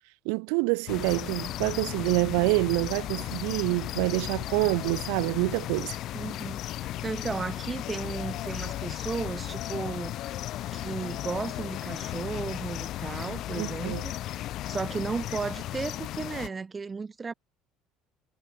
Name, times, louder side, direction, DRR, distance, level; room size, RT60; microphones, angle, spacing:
voice 1, 0.2-6.0 13.6-14.0, right 40 dB or more, 80° right, 0.9 m, -27 dB
sound 1, 0.9-16.5, left 14 dB, 60° left, 1.8 m, -35 dB
voice 2, 6.1-6.6 7.0-10.4 10.7-17.3, right 4 dB, 25° right, 3.7 m, -35 dB
supercardioid pair, 85°, 0 cm